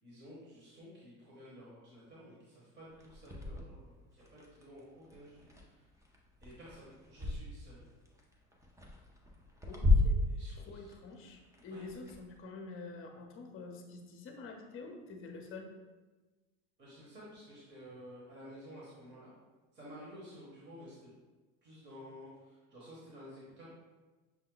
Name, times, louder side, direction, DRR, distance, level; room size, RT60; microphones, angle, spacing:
voice 1, 0.0-5.8 6.4-7.9 10.3-10.9 11.7-11.8 16.8-19.3 19.7-21.1 21.6-23.7, equal, 25° right, -7 dB, 1.3 m, -52 dB
sound 1, 2.9-7.4 7.8-12.4, left 2 dB, 10° right, 0.5 m, -34 dB
voice 2, 9.7-10.2 10.5-15.7, left 3 dB, 35° left, 3 dB, 0.8 m, -47 dB
6.2 x 2.1 x 3.8 m, 1.2 s
supercardioid pair, 125°, 39 cm